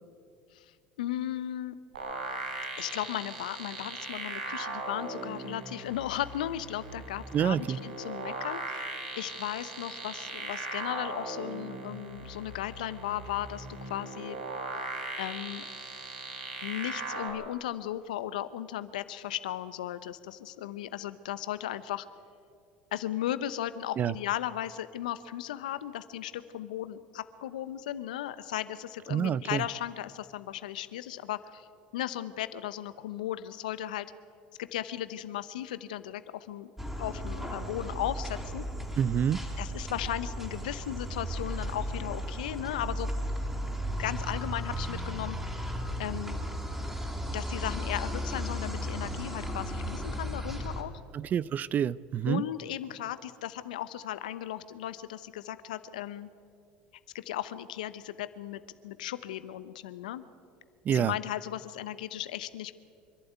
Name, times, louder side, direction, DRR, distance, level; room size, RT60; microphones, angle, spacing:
voice 1, 1.0-1.8 2.8-14.4 15.2-15.6 16.6-22.1 22.9-31.7 31.9-34.1 34.6-36.7 37.0-38.7 39.6-43.1 43.9-45.6 46.0-46.4 47.3-50.9 52.3-56.3 57.1-60.2 60.9-62.8, left 12 dB, 80° left, 14 dB, 0.8 m, -36 dB
sound 1, 1.9-17.3, right 2 dB, 85° right, 4.5 m, -39 dB
voice 2, 7.3-7.8 24.0-24.1 29.1-29.6 39.0-39.4 51.1-52.4 60.9-61.1, right 9 dB, 40° right, 21 dB, 0.5 m, -27 dB
sound 2, 36.8-50.8, equal, 10° right, 3.9 m, -35 dB
25.5 x 11.5 x 9.3 m, 2.4 s
hypercardioid pair, 75°, 4 cm